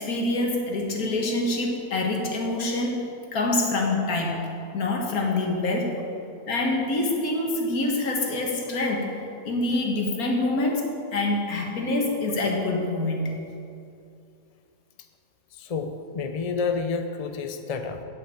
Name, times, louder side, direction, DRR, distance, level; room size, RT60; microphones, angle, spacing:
voice 1, 0.0-4.5 4.7-6.0 6.5-10.8 11.1-13.4, left 2 dB, 60° left, 0 dB, 2.0 m, -26 dB
voice 2, 15.5-18.0, left 5 dB, 40° left, 6 dB, 0.5 m, -29 dB
8.3 x 8.3 x 8.4 m, 2.5 s
omnidirectional pair, 1.7 m